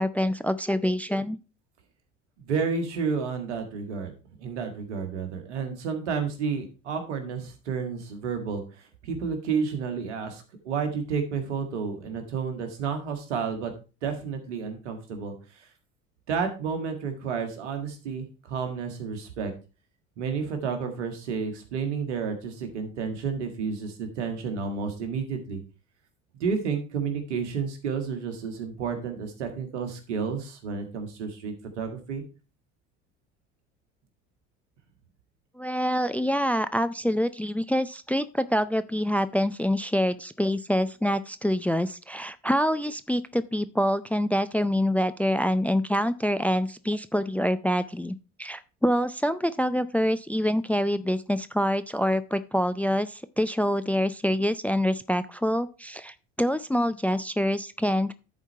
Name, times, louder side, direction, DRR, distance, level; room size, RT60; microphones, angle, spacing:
voice 1, 0.0-1.4 35.6-58.1, equal, 5° left, 14 dB, 0.4 m, -26 dB
voice 2, 2.4-4.1 4.4-8.6 9.0-13.7 14.0-15.4 16.3-19.5 20.2-25.6 26.4-32.2, right 5 dB, 80° right, 6 dB, 1.8 m, -31 dB
10.5 x 4.5 x 4.4 m, 0.33 s
hypercardioid pair, 65°, 34 cm